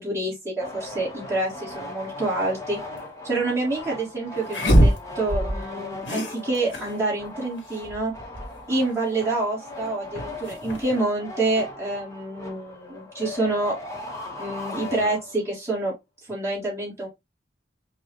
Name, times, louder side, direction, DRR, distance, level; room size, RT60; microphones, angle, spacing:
voice 1, 0.0-2.8 3.2-8.1 8.7-13.8 14.4-15.9 16.3-17.1, right 2 dB, 15° right, 1.8 m, -27 dB
sound 1, 0.6-15.6, left 2 dB, 15° left, 1.1 m, -38 dB
sound 2, 3.0-3.1 4.5-5.7 6.0-7.0 7.2-7.3 7.6-8.8 10.1-11.0, equal, 85° left, 1.4 m, -23 dB
5.2 x 2.4 x 3.0 m
head